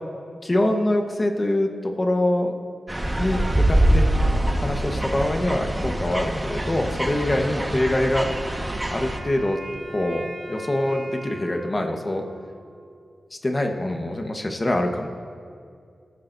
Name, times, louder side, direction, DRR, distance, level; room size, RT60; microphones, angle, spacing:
voice 1, 0.4-2.6 3.2-4.1 4.6-8.3 8.9-9.6 9.9-12.2 13.4-15.1, left 1 dB, 30° left, 3 dB, 1.2 m, -24 dB
sound 1, 2.9-9.2, right 1 dB, 15° right, 1.4 m, -24 dB
Wind instrument woodwind instrument, 7.9-13.1, right 2 dB, 50° right, 3.4 m, -40 dB
20.5 x 13.5 x 2.7 m, 2.2 s
cardioid pair, 70°, 0 cm